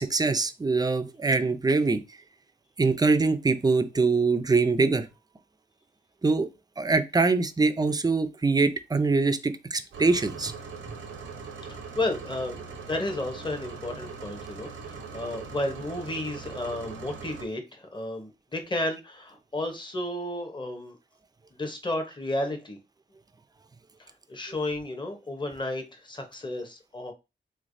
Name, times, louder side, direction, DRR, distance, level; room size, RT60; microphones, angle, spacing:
voice 1, 0.0-2.0 2.8-5.1 6.2-6.5 6.8-10.5, right 3 dB, 20° right, 0.4 m, -23 dB
sound 1, 9.9-17.5, right 5 dB, 85° right, 0.8 m, -41 dB
voice 2, 11.7-21.0 21.5-22.8 24.0-27.1, left 1 dB, 25° left, 0.9 m, -33 dB
3.2 x 3.0 x 2.6 m
cardioid pair, 55°, 20 cm